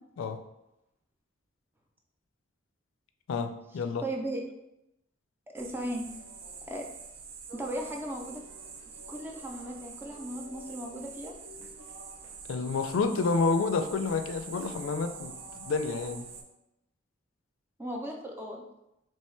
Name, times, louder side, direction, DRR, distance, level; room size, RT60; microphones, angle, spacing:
voice 1, 3.3-4.0 12.5-16.3, left 4 dB, 85° left, 7 dB, 0.3 m, -29 dB
voice 2, 4.0-4.4 5.5-6.0 6.7-6.9 7.5-8.4 9.1-11.3 17.8-18.6, right 1 dB, 10° right, 1 dB, 0.4 m, -36 dB
sound 1, 5.6-16.4, right 5 dB, 70° right, 0.5 m, -45 dB
3.1 x 2.2 x 4.3 m, 0.86 s
head